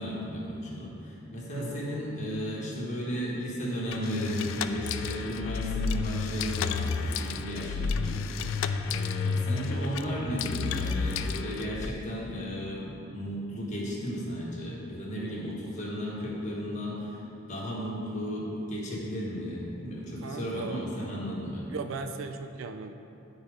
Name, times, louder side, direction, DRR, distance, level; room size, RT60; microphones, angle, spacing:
voice 1, 0.0-17.2 17.5-21.7, equal, 35° left, -4 dB, 1.4 m, -34 dB
voice 2, 1.5-1.9 20.2-20.8 21.7-22.9, right 4 dB, 70° right, 7 dB, 0.4 m, -37 dB
sound 1, 3.9-11.9, left 5 dB, 70° left, 0.3 m, -31 dB
10.5 x 4.0 x 4.8 m, 2.8 s
head